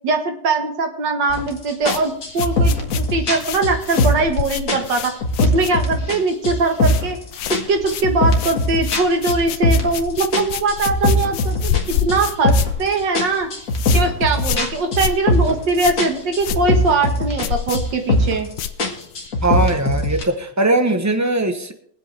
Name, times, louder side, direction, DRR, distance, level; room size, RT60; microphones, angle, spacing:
voice 1, 0.0-7.2 7.5-11.7 12.0-13.5 13.9-18.5, right 3 dB, 80° right, 5 dB, 2.2 m, -21 dB
sound 1, 1.3-1.5 1.9-4.4 4.7-6.2 6.4-7.2 7.5-10.0 10.3-12.8 13.1-15.7 16.0-17.5 17.7-18.5 18.8-20.2, left 1 dB, 50° left, 2.1 m, -20 dB
sound 2, 1.8-6.2 6.4-7.0 7.3-19.3, left 10 dB, 85° left, 1.4 m, -29 dB
voice 2, 19.4-21.7, right 2 dB, 20° right, 7 dB, 0.4 m, -19 dB
23.0 x 8.1 x 3.4 m, 0.65 s
omnidirectional pair, 1.9 m